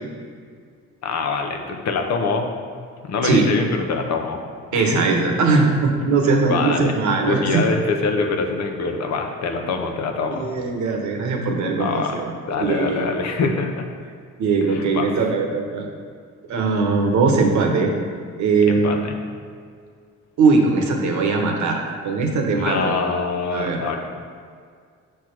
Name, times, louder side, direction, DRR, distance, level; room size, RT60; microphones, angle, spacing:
voice 1, 1.0-2.5 3.0-4.4 4.7-5.0 6.5-6.9 7.2-10.5 11.8-12.2 12.5-13.8 14.7-15.1 18.7-19.2 22.6-24.0, left 4 dB, 60° left, 4 dB, 0.8 m, -24 dB
voice 2, 4.7-7.6 10.3-12.3 12.6-13.1 14.4-15.9 16.5-17.9 18.4-19.0 20.4-23.0 23.5-23.8, right 4 dB, 70° right, 2 dB, 1.1 m, -20 dB
6.2 x 3.4 x 5.9 m, 2.1 s
cardioid pair, 90°, 30 cm